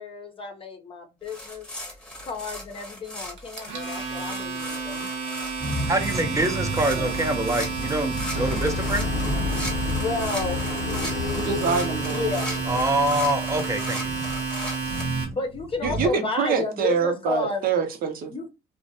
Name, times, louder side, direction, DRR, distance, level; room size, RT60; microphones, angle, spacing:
voice 1, 0.0-1.7 2.2-5.1 10.0-10.6 12.1-12.6 15.3-17.7 18.3-18.5, left 3 dB, 30° left, 0.6 m, -31 dB
sound 1, 1.3-15.0, left 1 dB, 5° left, 1.0 m, -38 dB
Domestic sounds home sounds, 3.4-15.2, right 5 dB, 90° right, 0.9 m, -31 dB
voice 2, 5.6-10.0 12.7-14.5 14.8-15.4, right 1 dB, 20° right, 0.5 m, -26 dB
sound 2, 8.3-13.9, left 5 dB, 85° left, 0.5 m, -32 dB
voice 3, 11.3-12.3 15.8-18.3, right 6 dB, 60° right, 0.7 m, -25 dB
2.5 x 2.1 x 2.6 m
cardioid pair, 110°, 17 cm